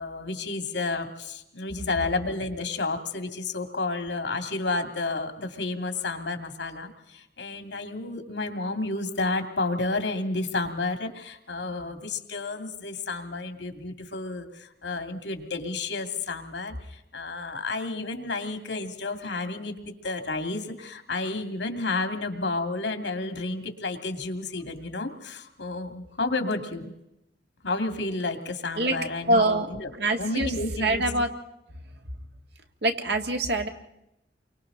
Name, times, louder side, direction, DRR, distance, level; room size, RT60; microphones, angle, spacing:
voice 1, 0.0-19.7 20.0-26.9 27.6-29.9 30.2-31.0, left 3 dB, 85° left, 6 dB, 2.3 m, -31 dB
voice 2, 29.3-29.7 30.0-30.5 30.8-31.3 32.8-33.7, right 2 dB, 65° right, 4 dB, 1.9 m, -24 dB
30.0 x 24.0 x 3.9 m, 0.82 s
head